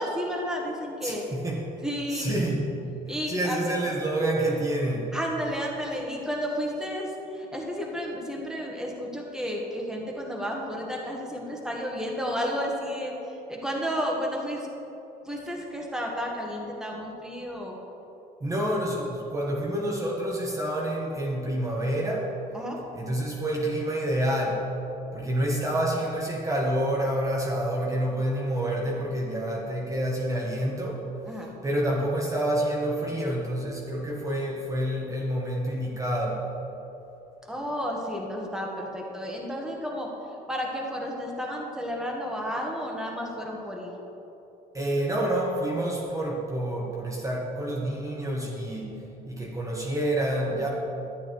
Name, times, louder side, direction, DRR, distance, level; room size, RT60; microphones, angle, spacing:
voice 1, 0.0-1.3 1.8-2.4 3.1-3.8 5.1-13.1 13.5-14.7 15.2-17.7 22.5-22.8 31.3-31.5 37.5-40.1 40.5-43.9, equal, 5° right, -2 dB, 1.7 m, -32 dB
voice 2, 1.0-1.8 2.1-2.8 3.3-5.1 18.4-22.3 22.9-24.7 25.1-31.0 31.6-36.4 44.7-49.0 49.3-50.7, right 1 dB, 20° right, -4 dB, 1.5 m, -28 dB
12.5 x 8.8 x 4.7 m, 3.0 s
cardioid pair, 110°, 17 cm